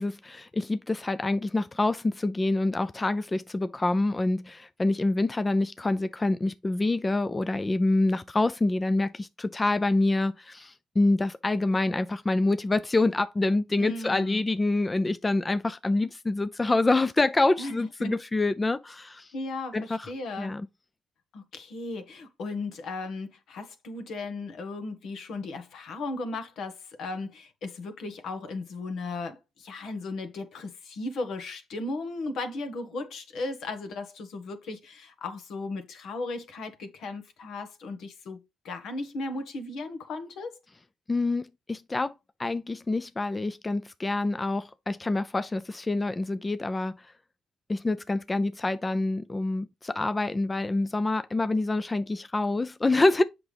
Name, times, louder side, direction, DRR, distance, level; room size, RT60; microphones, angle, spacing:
voice 1, 0.0-19.3 19.7-20.1 20.4-20.7 41.1-42.1 42.4-47.1 47.7-53.2, left 2 dB, 20° left, 0.4 m, -26 dB
voice 2, 13.8-14.4 17.6-18.2 19.3-20.5 21.3-40.5, left 2 dB, 75° left, 1.6 m, -36 dB
7.8 x 5.9 x 3.4 m
cardioid pair, 90°, 0 cm